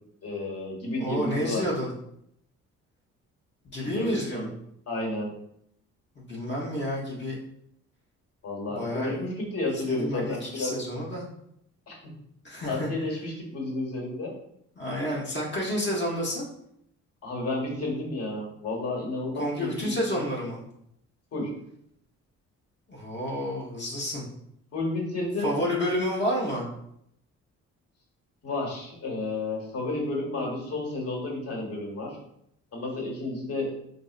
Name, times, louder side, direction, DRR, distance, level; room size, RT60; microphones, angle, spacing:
voice 1, 0.2-1.6 3.8-4.5 4.9-5.3 8.4-10.7 11.9-12.0 12.6-14.3 17.2-20.2 21.3-21.5 24.7-25.5 28.4-32.2 32.7-33.7, left 2 dB, 55° left, -1 dB, 1.4 m, -31 dB
voice 2, 1.0-1.9 3.7-4.5 6.1-7.4 8.7-9.4 9.7-11.3 12.4-12.9 14.8-16.4 19.3-20.6 22.9-24.2 25.4-26.7, equal, 35° left, -3 dB, 0.9 m, -30 dB
4.0 x 2.6 x 2.4 m, 0.74 s
cardioid pair, 90°, 30 cm